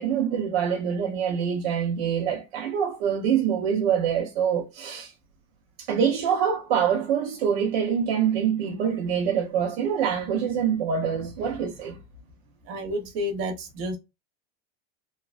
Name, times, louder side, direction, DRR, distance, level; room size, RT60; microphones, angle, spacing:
voice 1, 0.0-5.1 5.8-12.0, right 8 dB, 70° right, 0.7 m, -25 dB
voice 2, 12.7-14.0, equal, 50° right, 1.0 m, -30 dB
3.0 x 2.2 x 2.4 m
supercardioid pair, 140°, 31 cm